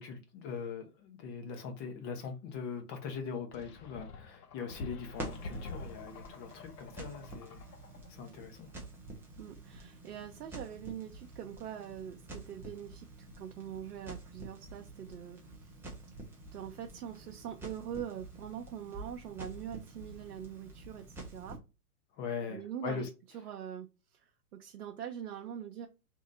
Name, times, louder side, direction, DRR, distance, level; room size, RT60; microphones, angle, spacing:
voice 1, 0.0-7.6 8.1-8.7 22.2-23.1, left 6 dB, 30° left, 1.0 m, -41 dB
sound 1, 3.5-8.1, left 3 dB, 75° left, 0.9 m, -46 dB
Crackle, 5.1-21.6, right 2 dB, 5° right, 0.5 m, -48 dB
voice 2, 9.4-15.8 16.5-21.6 22.5-23.1 23.3-25.9, right 9 dB, 75° right, 0.7 m, -43 dB
3.0 x 2.8 x 3.8 m
hypercardioid pair, 120°, 46 cm